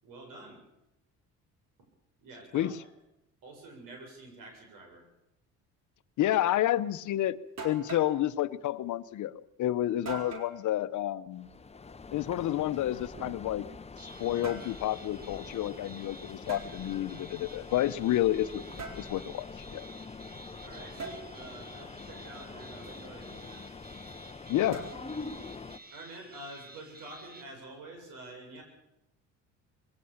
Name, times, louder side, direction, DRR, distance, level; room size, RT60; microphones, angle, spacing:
voice 1, 0.0-0.6 2.2-2.7 3.4-5.1 20.3-23.7 24.6-24.7 25.9-28.6, right 2 dB, 70° right, 3 dB, 7.6 m, -48 dB
voice 2, 6.2-7.4 7.6-11.5 12.1-13.7 14.0-19.9 24.5-25.0, left 13 dB, 60° left, 14 dB, 0.9 m, -30 dB
sound 1, 7.1-7.2 7.6-8.2 10.1-10.5 12.2-13.7 14.2-14.7 16.5-16.7 18.8-19.1 21.0-21.2 24.7-25.3, right 3 dB, 50° right, 4.2 m, -42 dB
sound 2, 11.3-25.8, left 4 dB, 20° left, 0.9 m, -45 dB
sound 3, 14.0-27.4, right 2 dB, 25° right, 2.1 m, -52 dB
21.0 x 17.5 x 7.3 m, 0.88 s
supercardioid pair, 85°, 34 cm